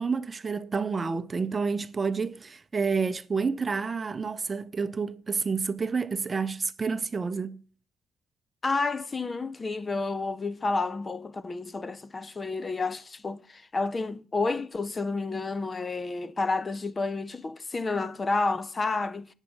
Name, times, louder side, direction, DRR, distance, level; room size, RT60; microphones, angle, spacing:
voice 1, 0.0-7.6, right 5 dB, 30° right, 0.6 m, -29 dB
voice 2, 8.6-19.3, left 3 dB, 30° left, 0.6 m, -30 dB
8.1 x 6.3 x 6.9 m
cardioid pair, 90°, 0 cm